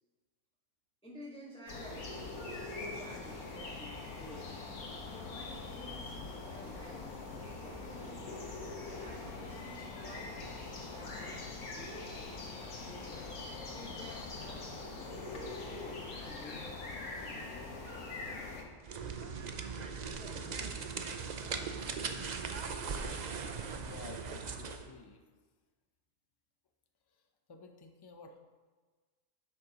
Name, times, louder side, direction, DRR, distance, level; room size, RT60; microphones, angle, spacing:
voice 1, 1.0-4.7 5.1-7.0 7.4-8.4 8.9-11.5 11.7-13.3 13.7-14.6 15.2-17.9 20.0-20.8, equal, 5° left, -5 dB, 1.5 m, -52 dB
sound 1, 1.7-18.6, left 3 dB, 70° left, 1.7 m, -43 dB
sound 2, 18.8-24.9, right 5 dB, 65° right, 0.4 m, -39 dB
voice 2, 23.7-25.2 27.1-28.4, left 3 dB, 40° left, 4 dB, 0.3 m, -52 dB
11.0 x 8.3 x 2.9 m, 1.4 s
omnidirectional pair, 1.5 m